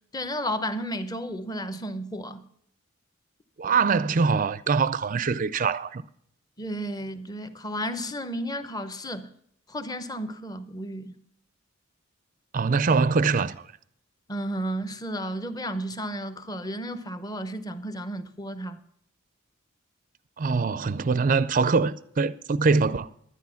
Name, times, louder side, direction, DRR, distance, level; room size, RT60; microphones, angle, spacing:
voice 1, 0.1-2.4 6.6-9.3 9.7-11.1 14.3-18.8, equal, 20° left, 0.8 m, -33 dB
voice 2, 3.6-6.0 12.5-13.6 20.4-23.1, right 4 dB, 40° right, 0.4 m, -23 dB
12.0 x 9.8 x 5.7 m
head